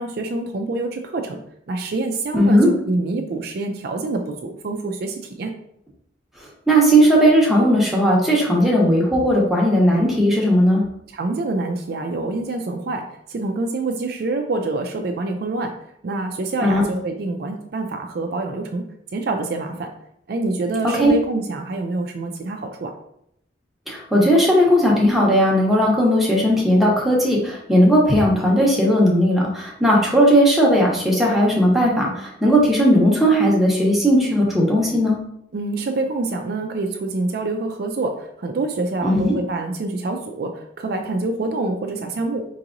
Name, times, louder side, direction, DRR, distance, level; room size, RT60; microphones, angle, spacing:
voice 1, 0.0-1.4 1.7-2.6 2.9-5.5 11.1-15.7 16.0-18.9 19.1-19.9 20.3-22.9 35.5-42.5, right 2 dB, 55° right, 4 dB, 0.4 m, -26 dB
voice 2, 2.3-2.7 6.7-10.8 16.6-16.8 21.0-21.1 23.9-35.2 39.0-39.3, equal, ahead, -4 dB, 0.9 m, -17 dB
4.6 x 2.9 x 2.5 m, 0.75 s
head